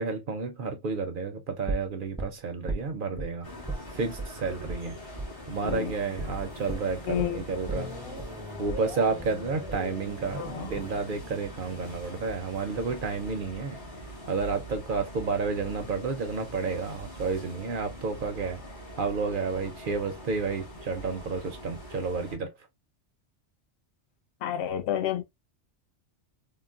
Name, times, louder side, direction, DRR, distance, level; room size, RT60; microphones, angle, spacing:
voice 1, 0.0-3.5 3.9-5.0 5.5-7.9 8.6-13.8 14.3-18.6 19.0-22.5, right 4 dB, 55° right, 0.6 m, -31 dB
sound 1, 1.7-3.3 3.7-3.9 4.2-4.3 4.7-4.8 5.2-5.3 5.7-5.9 6.2-6.3 6.7-12.7 13.0-13.1, right 1 dB, 5° right, 0.5 m, -38 dB
sound 2, 3.4-22.4, equal, 50° left, 1.8 m, -43 dB
voice 2, 5.6-5.9 7.1-7.4 10.3-10.8 24.4-25.2, left 10 dB, 70° left, 0.8 m, -30 dB
3.8 x 2.1 x 2.3 m
omnidirectional pair, 1.2 m